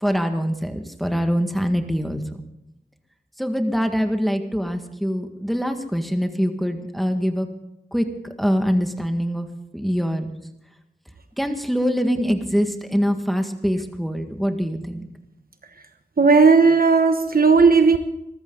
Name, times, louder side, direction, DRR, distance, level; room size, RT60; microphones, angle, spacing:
voice 1, 0.0-2.4 3.4-7.5 7.9-9.5 9.7-10.3 11.4-15.1, equal, ahead, 1.8 m, -24 dB
voice 2, 16.2-18.0, right 4 dB, 60° right, 1.1 m, -14 dB
21.5 x 14.0 x 3.9 m
wide cardioid pair, 60°, 17 cm